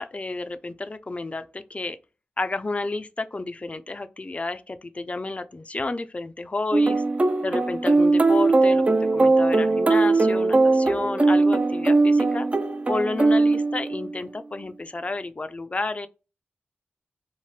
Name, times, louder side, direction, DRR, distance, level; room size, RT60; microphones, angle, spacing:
voice 1, 0.0-2.0 2.4-7.0 7.4-8.8 9.1-12.5 12.9-16.1, left 2 dB, 35° left, 0.4 m, -31 dB
sound 1, 6.7-14.2, right 3 dB, 35° right, 0.4 m, -20 dB
2.7 x 2.1 x 3.2 m
cardioid pair, 45°, 4 cm